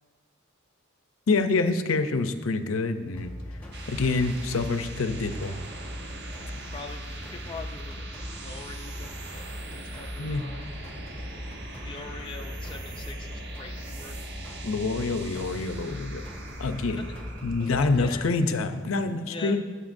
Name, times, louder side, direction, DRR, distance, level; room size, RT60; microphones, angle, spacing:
voice 1, 1.3-3.3 3.9-5.5 10.2-10.4 14.6-16.2 16.6-17.0 17.4-19.6, left 3 dB, 85° left, 9 dB, 0.6 m, -26 dB
sound 1, 3.1-18.2, left 1 dB, 5° left, 1.3 m, -39 dB
sound 2, 3.4-18.0, right 3 dB, 55° right, 1.0 m, -43 dB
voice 2, 6.7-8.1 8.4-9.5 9.7-10.7 11.8-14.3 16.9-17.2 17.6-18.4 19.3-19.6, left 4 dB, 25° left, 2 dB, 0.4 m, -43 dB
16.5 x 6.7 x 2.6 m, 1.4 s
head